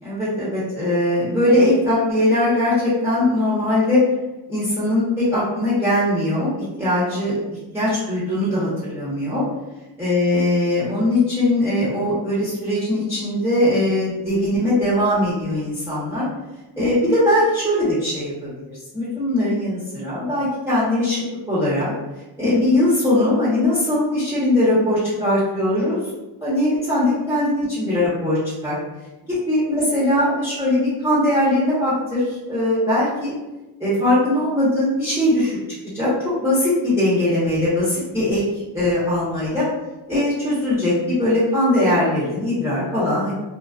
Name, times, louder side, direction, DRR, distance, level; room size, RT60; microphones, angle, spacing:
voice 1, 0.0-4.0 4.5-7.3 7.7-9.4 10.0-16.3 16.8-21.2 21.5-21.9 22.4-26.0 26.4-28.4 28.6-28.8 29.3-33.3 33.8-35.6 35.9-36.1 36.4-38.4 38.7-39.6 40.1-43.3, left 1 dB, 5° right, -12 dB, 1.2 m, -20 dB
2.4 x 2.3 x 2.5 m, 1.0 s
cardioid pair, 80°, 44 cm